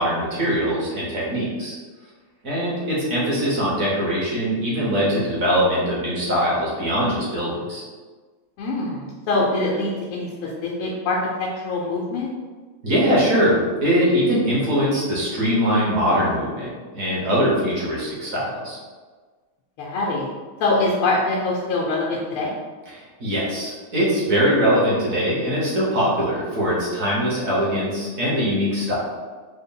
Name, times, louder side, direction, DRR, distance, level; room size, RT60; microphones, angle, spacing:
voice 1, 0.0-1.7 2.4-7.8 12.8-18.8 23.2-29.0, equal, 50° right, -6 dB, 1.1 m, -22 dB
voice 2, 8.6-12.3 19.8-20.3 20.6-22.6, left 2 dB, 90° left, -4 dB, 1.5 m, -24 dB
3.9 x 2.1 x 3.7 m, 1.4 s
omnidirectional pair, 2.3 m